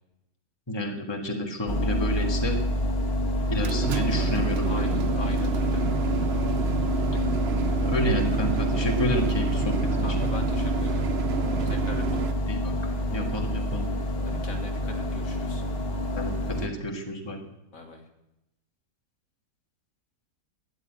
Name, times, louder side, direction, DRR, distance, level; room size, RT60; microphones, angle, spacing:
voice 1, 0.7-2.6 3.5-5.0 7.8-10.3 12.5-13.9 16.1-17.4, equal, 15° left, 2 dB, 1.6 m, -30 dB
sound 1, 1.7-16.7, left 1 dB, 40° left, 1.8 m, -27 dB
sound 2, 3.4-12.3, right 8 dB, 55° right, 0.8 m, -31 dB
voice 2, 4.6-5.8 10.0-11.1 11.5-12.3 14.2-15.6 17.7-18.0, left 2 dB, 60° left, 3 dB, 2.1 m, -40 dB
13.0 x 10.0 x 9.0 m, 0.92 s
omnidirectional pair, 1.6 m